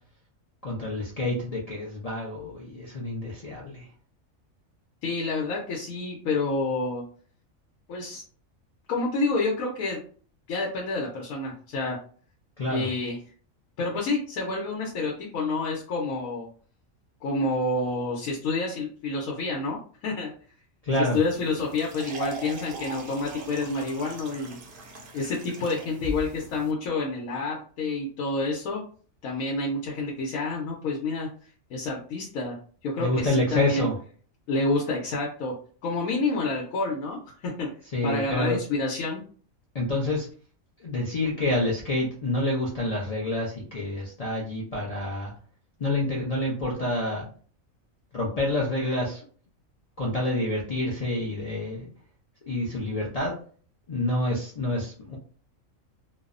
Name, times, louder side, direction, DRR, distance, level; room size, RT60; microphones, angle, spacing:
voice 1, 0.6-3.9 12.6-12.9 20.8-21.2 33.0-33.9 37.9-38.6 39.7-40.3 40.8-45.3 45.8-47.2 48.1-49.2 50.0-51.9 52.5-53.3 53.9-55.2, left 1 dB, 60° left, -4 dB, 0.4 m, -28 dB
voice 2, 5.0-7.0 7.9-8.2 8.9-10.0 10.5-12.0 12.7-13.2 13.8-16.5 17.2-20.3 21.0-24.6 25.1-28.8 29.2-31.3 31.7-32.6 32.8-33.9 34.5-35.5 35.8-37.7 38.0-39.2, left 3 dB, 90° left, -2 dB, 1.1 m, -28 dB
sound 1, 21.1-26.7, right 1 dB, 60° right, 0.5 m, -39 dB
2.7 x 2.0 x 2.4 m, 0.42 s
omnidirectional pair, 1.4 m